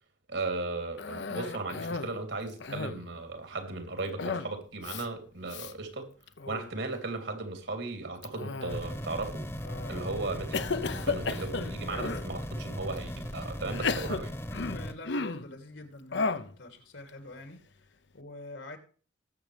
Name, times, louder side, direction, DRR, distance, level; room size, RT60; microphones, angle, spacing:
voice 1, 0.3-6.1 6.5-9.5 9.9-14.3, right 3 dB, 75° right, 3.4 m, -36 dB
Cough, 1.0-2.2 2.5-3.1 4.2-4.5 4.8-5.0 5.5-5.7 6.3-6.7 8.2-9.0 9.6-10.0 10.5-12.3 13.0-13.1 13.7-15.5 16.1-16.5, left 4 dB, 65° left, 0.8 m, -34 dB
sound 1, 8.7-14.9, equal, 15° left, 1.1 m, -38 dB
voice 2, 14.7-18.8, left 2 dB, 80° left, 2.9 m, -46 dB
20.0 x 7.6 x 3.4 m
head